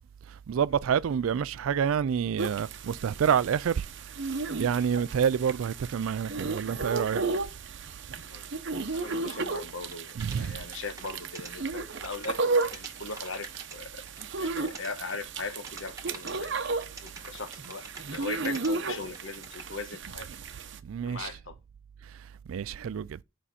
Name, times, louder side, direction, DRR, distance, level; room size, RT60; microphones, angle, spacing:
voice 1, 0.5-3.8 4.6-7.2 10.2-10.6 20.8-21.3 22.5-23.2, right 7 dB, 80° right, 0.3 m, -28 dB
sound 1, 2.4-20.8, right 3 dB, 60° right, 0.8 m, -34 dB
voice 2, 8.9-14.0 14.4-16.5 17.0-20.3 21.0-21.5, left 3 dB, 65° left, 1.1 m, -39 dB
sound 2, 9.8-11.5 11.9-13.8 14.1-18.7 19.0-19.7, right 3 dB, 15° right, 1.7 m, -46 dB
10.0 x 5.6 x 4.1 m
head